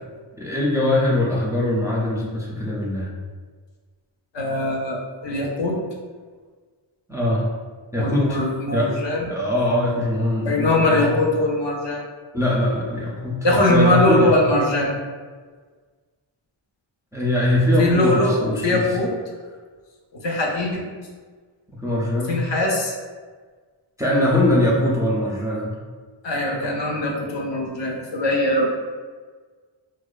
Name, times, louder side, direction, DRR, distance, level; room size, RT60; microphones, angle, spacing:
voice 1, 0.4-3.1 7.1-7.4 7.9-8.4 8.7-9.0 9.2-11.2 12.3-13.4 13.7-14.3 17.1-18.9 21.7-22.4 24.0-25.7, left 1 dB, 5° right, -5 dB, 0.4 m, -22 dB
voice 2, 4.3-5.8 8.0-9.3 10.4-12.0 13.4-15.0 17.8-19.1 20.1-20.9 22.3-22.9 26.2-28.7, left 1 dB, 65° left, -1 dB, 0.6 m, -21 dB
2.6 x 2.1 x 2.3 m, 1.5 s
wide cardioid pair, 70°, 48 cm